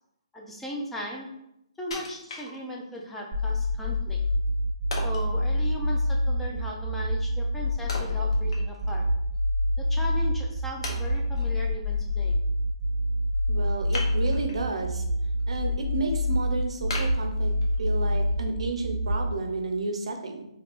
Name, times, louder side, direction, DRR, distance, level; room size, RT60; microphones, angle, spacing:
voice 1, 0.3-1.3 1.8-4.2 5.0-9.1 9.8-12.4, equal, 5° left, -2 dB, 0.4 m, -37 dB
Wood, 1.9-3.0 3.5-3.6 4.9-5.3 7.9-9.0 9.3-9.4 10.1-10.2 10.8-11.5 13.9-14.7 15.1-15.6 16.0-16.1 16.9-17.9 18.4-18.5, left 2 dB, 60° left, 0.8 m, -37 dB
sound 1, 3.3-19.3, left 1 dB, 30° right, 0.7 m, -26 dB
voice 2, 13.5-15.0 15.5-17.5 17.8-20.5, right 3 dB, 75° right, 4 dB, 0.6 m, -31 dB
3.4 x 2.8 x 2.4 m, 0.81 s
hypercardioid pair, 160°, 3 cm